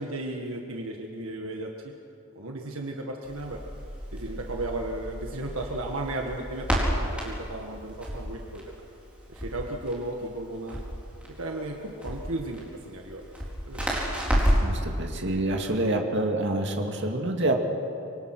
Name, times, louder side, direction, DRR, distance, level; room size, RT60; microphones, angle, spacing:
voice 1, 0.0-1.9 2.3-3.6 4.1-6.8 7.1-8.6 9.3-10.8 11.4-13.2 13.7-13.9, right 2 dB, 70° right, 1 dB, 1.7 m, -35 dB
Crackle, 3.2-14.8, equal, 5° right, 4.3 m, -31 dB
voice 2, 14.6-17.6, right 1 dB, 55° right, 2 dB, 2.3 m, -27 dB
25.5 x 23.0 x 6.1 m, 2.6 s
head